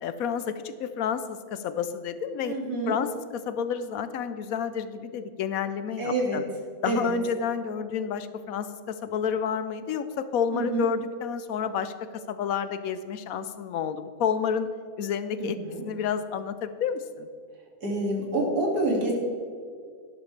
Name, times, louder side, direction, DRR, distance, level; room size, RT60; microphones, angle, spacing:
voice 1, 0.0-2.6 2.9-6.4 6.8-11.9 12.3-14.7 15.0-15.6 15.8-17.3, left 7 dB, 70° left, 11 dB, 1.0 m, -30 dB
voice 2, 2.4-3.0 6.0-6.4 6.8-7.1 10.5-10.9 15.4-15.8 17.8-19.1, right 2 dB, 80° right, -2 dB, 2.8 m, -27 dB
11.5 x 11.5 x 3.3 m, 2.1 s
omnidirectional pair, 1.6 m